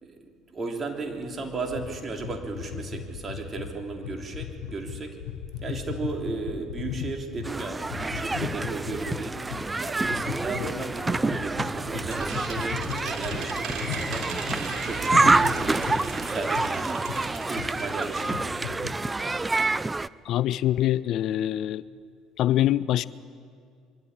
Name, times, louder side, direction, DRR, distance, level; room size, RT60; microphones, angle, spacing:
voice 1, 0.0-5.2 5.6-14.3 14.8-17.0 17.5-18.9, right 3 dB, 35° right, 3 dB, 3.1 m, -35 dB
sound 1, 1.7-7.5 7.8-9.6 10.0-10.7 11.1-14.6 14.9-16.1 16.6-16.7 17.1-17.3 17.6-17.7 18.1-18.9, left 9 dB, 85° left, 1.1 m, -36 dB
sound 2, 7.4-20.1, right 3 dB, 20° right, 0.5 m, -27 dB
sound 3, 11.3-18.2 18.6-18.7 18.9-19.0, right 5 dB, 65° right, 3.4 m, -38 dB
voice 2, 20.3-21.8 22.4-23.0, left 13 dB, 60° left, 18 dB, 0.4 m, -24 dB
23.0 x 13.0 x 9.9 m, 2.2 s
hypercardioid pair, 65°, 0 cm